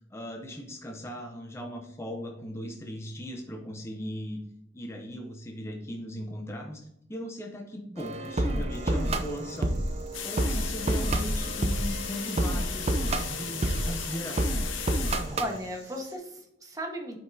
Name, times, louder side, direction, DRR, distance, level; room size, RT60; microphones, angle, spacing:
voice 1, 0.1-4.4 4.7-9.8 10.2-13.0 13.3-14.4, equal, 15° left, 3 dB, 0.5 m, -38 dB
sound 1, 8.0-15.6, right 1 dB, 35° right, 0.5 m, -29 dB
Insect, 8.7-16.2, right 4 dB, 75° right, 1.7 m, -54 dB
sound 2, 10.1-16.0, left 9 dB, 85° left, 0.7 m, -37 dB
voice 2, 10.8-11.1 15.3-17.2, equal, 20° right, 2 dB, 1.0 m, -36 dB
7.9 x 5.3 x 2.6 m, 0.79 s
head